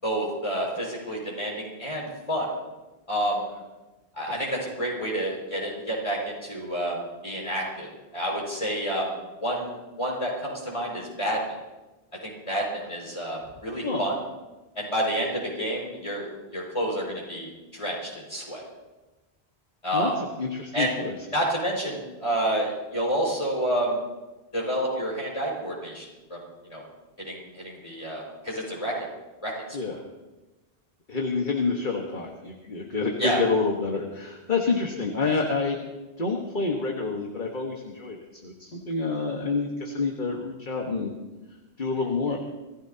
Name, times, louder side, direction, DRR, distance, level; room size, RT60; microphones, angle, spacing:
voice 1, 0.0-2.5 3.1-3.5 4.2-11.6 12.2-14.2 14.7-18.6 19.8-20.2 20.7-20.9 21.3-24.0 24.5-26.4 26.7-26.8 27.2-29.0 29.4-29.5 29.9-30.0 33.2-33.4, right 1 dB, 30° left, -2 dB, 5.4 m, -29 dB
voice 2, 20.4-21.1 29.7-30.0 31.1-35.8 36.2-38.2 38.4-41.1 41.8-42.4, left 4 dB, 50° left, 1 dB, 1.5 m, -28 dB
26.0 x 16.0 x 2.8 m, 1.1 s
omnidirectional pair, 1.1 m